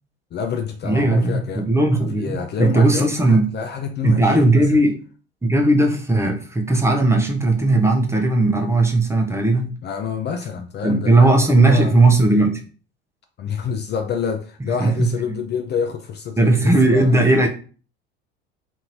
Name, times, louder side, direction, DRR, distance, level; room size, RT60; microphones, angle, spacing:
voice 1, 0.3-1.6 2.1-4.7 9.8-12.0 13.4-17.1, left 6 dB, 35° left, 5 dB, 0.4 m, -27 dB
voice 2, 0.8-3.5 4.0-5.0 5.4-9.7 10.8-12.6 14.8-15.4 16.4-17.5, right 2 dB, 10° right, 1 dB, 0.6 m, -17 dB
2.6 x 2.6 x 3.0 m, 0.39 s
hypercardioid pair, 70°, 31 cm